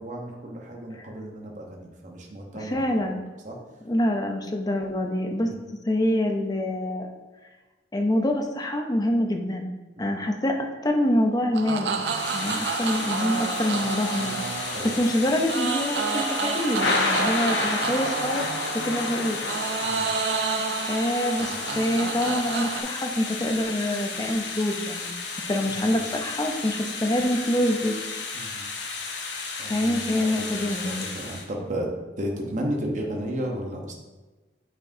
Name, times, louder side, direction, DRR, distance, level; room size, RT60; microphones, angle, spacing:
voice 1, 0.0-3.1 3.4-3.6 5.4-5.6 10.0-10.2 12.4-12.7 14.7-15.0 19.8-20.1 25.7-26.1 28.3-28.6 29.6-31.9 32.2-33.9, right 1 dB, 45° right, 0 dB, 0.9 m, -34 dB
voice 2, 2.5-3.2 3.8-5.5 5.9-7.1 7.9-9.7 10.0-11.9 12.3-18.4 18.7-19.4 20.9-25.2 25.5-27.9 29.7-31.1, left 1 dB, 20° left, 3 dB, 0.6 m, -26 dB
sound 1, 11.5-22.8, right 5 dB, 70° right, 0.5 m, -30 dB
Thunder / Rain, 12.0-31.4, left 3 dB, 85° left, 0.9 m, -32 dB
8.7 x 4.6 x 2.7 m, 1.2 s
head